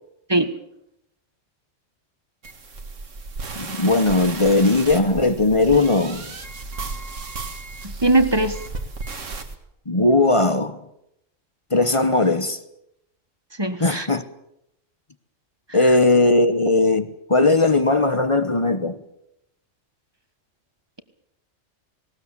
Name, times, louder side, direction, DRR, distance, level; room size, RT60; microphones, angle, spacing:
sound 1, 2.4-9.5, right 3 dB, 70° right, 2.1 m, -34 dB
voice 1, 3.5-6.2 9.9-10.8 11.7-12.6 13.8-14.2 15.7-19.0, left 2 dB, 25° left, 1.1 m, -18 dB
voice 2, 7.8-8.6 13.6-14.1, right 2 dB, 20° right, 1.5 m, -20 dB
19.5 x 18.5 x 8.4 m
omnidirectional pair, 1.3 m